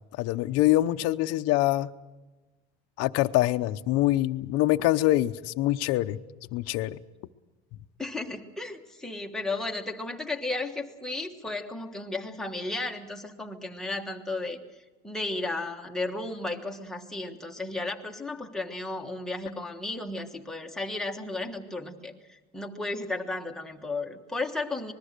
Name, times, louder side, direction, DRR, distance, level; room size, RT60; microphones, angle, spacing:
voice 1, 0.2-1.9 3.0-6.2 6.5-7.0, left 16 dB, 55° left, 13 dB, 0.8 m, -24 dB
voice 2, 8.0-14.6 15.0-24.9, left 2 dB, ahead, 1 dB, 1.4 m, -34 dB
25.5 x 21.0 x 6.7 m, 1.2 s
cardioid pair, 165°, 30 cm